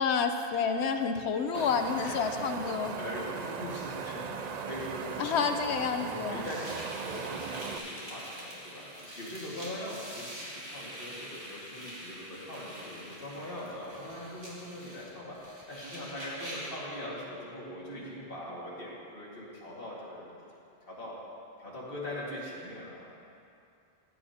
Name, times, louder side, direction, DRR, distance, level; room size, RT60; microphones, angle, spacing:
voice 1, 0.0-3.0 5.2-6.5, left 6 dB, 85° left, 7 dB, 1.0 m, -29 dB
Wind, 1.5-7.8, right 6 dB, 55° right, 0.5 m, -38 dB
voice 2, 2.9-5.2 6.0-20.4 20.8-21.2 21.6-23.1, left 1 dB, 60° left, -6 dB, 2.2 m, -41 dB
sound 1, 6.4-16.8, equal, 80° right, 2.6 m, -45 dB
15.0 x 10.0 x 2.8 m, 2.6 s
omnidirectional pair, 1.1 m